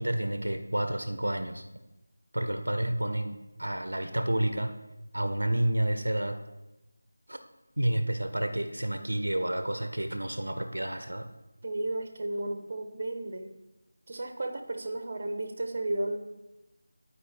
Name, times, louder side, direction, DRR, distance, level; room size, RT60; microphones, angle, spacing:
voice 1, 0.0-1.6 2.3-4.7 5.1-6.4 7.3-7.4 7.8-11.3, right 1 dB, 85° right, 8 dB, 0.7 m, -30 dB
voice 2, 11.6-13.5 14.1-16.2, right 2 dB, 40° right, 6 dB, 0.9 m, -33 dB
11.0 x 4.7 x 3.4 m, 1.0 s
figure-of-eight pair, 170°, 0 cm